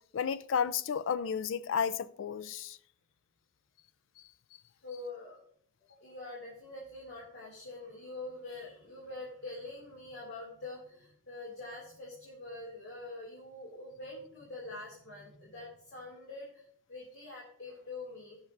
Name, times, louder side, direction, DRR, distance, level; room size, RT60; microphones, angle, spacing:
voice 1, 0.1-2.8, left 7 dB, 75° left, 0.4 m, -32 dB
voice 2, 4.8-5.4 5.9-18.4, left 2 dB, 60° left, 2.5 m, -45 dB
17.0 x 6.4 x 2.6 m
head